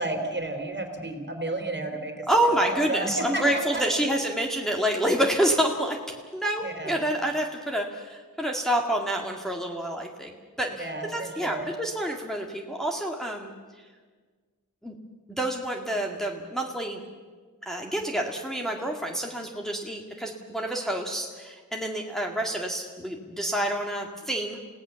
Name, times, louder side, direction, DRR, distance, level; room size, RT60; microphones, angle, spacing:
voice 1, 0.0-2.1 2.6-3.4 3.7-3.8 6.6-7.0 10.8-11.7, right 2 dB, 35° right, 5 dB, 3.6 m, -31 dB
voice 2, 2.3-6.0 6.3-10.3 10.6-13.5 14.8-14.9 15.4-17.0 17.7-24.7, right 1 dB, ahead, 0 dB, 2.2 m, -28 dB
29.5 x 17.5 x 7.1 m, 1.5 s
wide cardioid pair, 85°, 32 cm